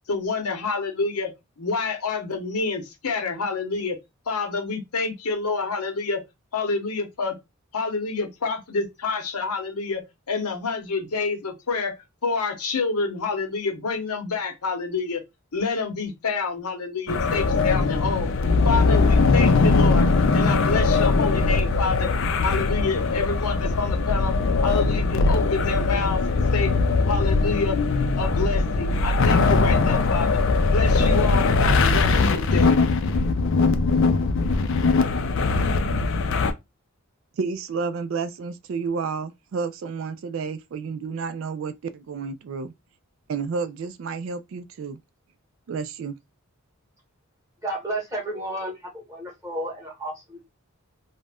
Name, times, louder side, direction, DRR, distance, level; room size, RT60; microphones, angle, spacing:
voice 1, 0.1-4.0 4.3-6.2 6.5-7.4 7.7-12.0 12.2-15.2 15.5-18.3 18.6-20.1 20.3-22.1 22.4-24.3 24.6-26.7 27.1-27.8 28.1-30.4 30.7-32.8, left 4 dB, 85° left, 0.8 m, -28 dB
sound 1, 17.1-36.5, left 3 dB, 55° left, 0.4 m, -21 dB
voice 2, 37.4-42.7 43.3-45.0 45.7-46.2, right 5 dB, 60° right, 0.3 m, -30 dB
voice 3, 47.6-50.4, right 1 dB, 15° right, 1.1 m, -32 dB
2.4 x 2.1 x 3.3 m
head